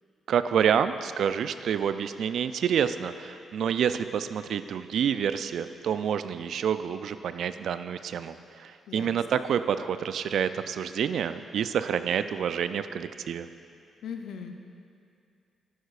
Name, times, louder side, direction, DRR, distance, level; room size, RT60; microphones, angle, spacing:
voice 1, 0.3-13.5, right 8 dB, 70° right, 12 dB, 0.3 m, -28 dB
voice 2, 8.9-9.4 14.0-14.5, left 7 dB, 70° left, 5 dB, 0.6 m, -39 dB
11.5 x 9.4 x 2.4 m, 2.6 s
hypercardioid pair, 45°, 0 cm